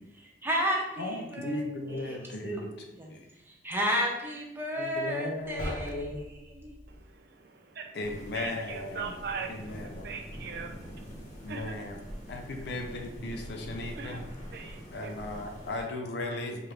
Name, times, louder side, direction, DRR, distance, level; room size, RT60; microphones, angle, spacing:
voice 1, 0.1-1.6 1.9-3.1 3.4-6.7, equal, 10° right, -1 dB, 0.6 m, -33 dB
voice 2, 1.0-2.7 3.1-3.2 4.8-6.3 7.9-9.1 9.5-10.1 11.4-12.0 12.3-14.2 14.9-16.7, left 2 dB, 65° left, 2 dB, 0.5 m, -36 dB
sound 1, 5.6-7.1, equal, 15° left, 0.9 m, -40 dB
voice 3, 6.9-8.0 8.3-11.9 12.1-12.4 13.9-15.1, right 5 dB, 60° right, 3 dB, 0.5 m, -41 dB
sound 2, 8.0-15.9, equal, 40° left, 1.0 m, -44 dB
4.8 x 2.5 x 3.0 m, 0.94 s
head